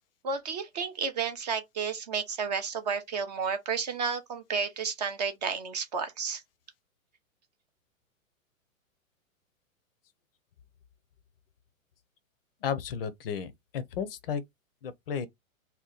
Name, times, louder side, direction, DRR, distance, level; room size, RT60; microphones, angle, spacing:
voice 1, 0.2-6.4, right 5 dB, 30° right, 0.4 m, -32 dB
voice 2, 12.6-14.4 14.8-15.3, left 7 dB, 45° left, 0.5 m, -33 dB
2.8 x 2.1 x 3.8 m
figure-of-eight pair, 115°, 42 cm